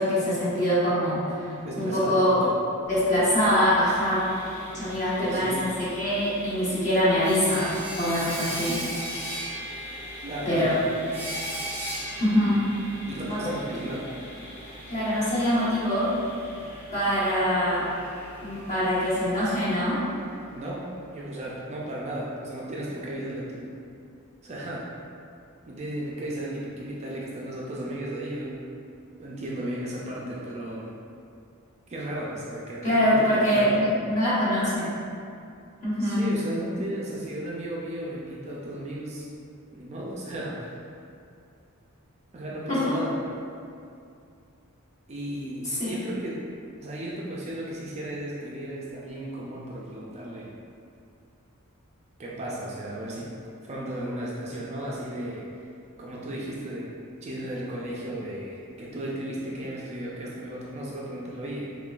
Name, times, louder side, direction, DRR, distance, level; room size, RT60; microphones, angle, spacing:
voice 1, 0.0-1.5 1.8-2.4 2.9-4.2 4.7-5.5 5.8-8.8 10.5-10.7 12.2-12.6 13.3-13.4 14.9-16.1 16.9-17.8 18.4-20.0 32.8-34.9 35.8-36.3 42.7-42.8 45.6-45.9, equal, 35° left, -10 dB, 1.1 m, -24 dB
voice 2, 1.6-2.6 4.7-4.9 5.2-5.6 10.2-10.8 13.1-14.0 20.5-20.9 21.1-23.7 24.4-24.9 25.7-28.7 29.2-30.9 31.9-34.0 36.0-39.3 39.7-40.8 42.3-43.2 45.1-46.4 46.8-50.5 52.2-53.3 53.6-55.5 56.0-56.9 57.2-61.7, right 1 dB, 30° right, -5 dB, 0.4 m, -34 dB
Sawing, 2.8-20.7, equal, 10° left, 0.8 m, -39 dB
3.7 x 3.1 x 2.4 m, 2.5 s
head